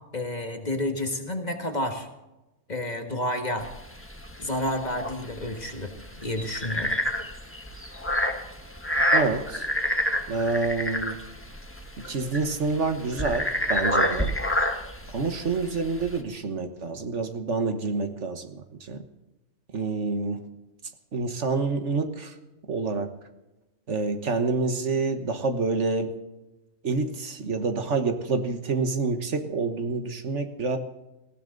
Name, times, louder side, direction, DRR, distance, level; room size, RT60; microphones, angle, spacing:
voice 1, 0.1-2.1 2.7-3.7 4.4-5.9 6.2-7.0, left 1 dB, 30° left, 5 dB, 1.8 m, -30 dB
sound 1, 3.6-16.2, left 1 dB, 10° left, 1.4 m, -28 dB
voice 2, 9.1-9.7 10.3-11.2 12.0-14.4 15.1-19.0 19.7-20.5 21.1-22.4 22.7-23.2 23.9-26.1 26.8-30.8, right 3 dB, 60° right, 7 dB, 1.6 m, -27 dB
19.0 x 16.0 x 3.9 m, 1.0 s
omnidirectional pair, 1.4 m